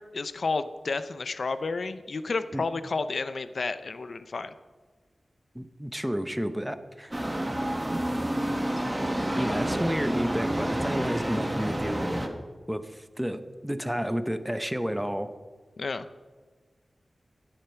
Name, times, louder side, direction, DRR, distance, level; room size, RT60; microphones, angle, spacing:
voice 1, 0.0-4.5 15.8-16.1, left 4 dB, 70° left, 12 dB, 0.7 m, -31 dB
voice 2, 5.5-7.1 9.4-12.1 12.7-15.3, equal, 5° right, 10 dB, 0.9 m, -31 dB
mitzvah tank on flatbush, 7.1-12.3, right 1 dB, 20° right, 1.6 m, -29 dB
16.0 x 11.5 x 4.5 m, 1.4 s
wide cardioid pair, 85°, 0 cm